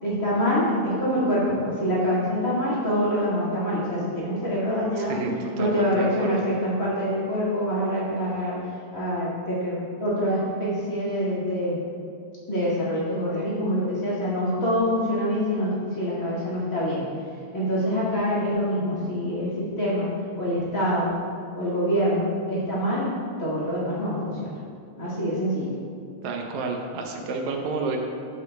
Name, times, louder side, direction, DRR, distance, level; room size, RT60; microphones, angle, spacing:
voice 1, 0.0-5.2 5.5-8.6 8.9-11.8 12.5-17.1 17.5-20.1 20.4-21.1 21.6-23.1 23.4-24.5 25.0-25.7, equal, 30° left, -8 dB, 2.0 m, -25 dB
voice 2, 5.0-6.4 26.2-28.0, right 4 dB, 80° right, 2 dB, 2.1 m, -30 dB
11.0 x 7.8 x 2.2 m, 2.3 s
omnidirectional pair, 3.3 m